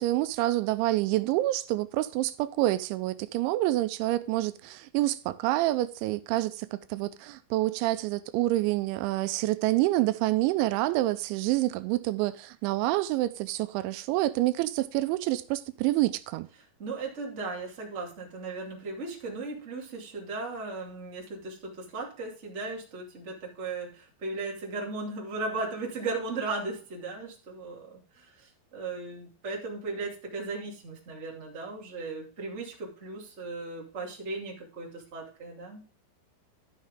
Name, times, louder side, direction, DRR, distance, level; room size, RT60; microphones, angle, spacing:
voice 1, 0.0-16.5, right 16 dB, 85° right, 2.9 m, -27 dB
voice 2, 16.8-35.8, right 3 dB, 25° right, 1.7 m, -37 dB
13.0 x 6.3 x 3.6 m
omnidirectional pair, 5.3 m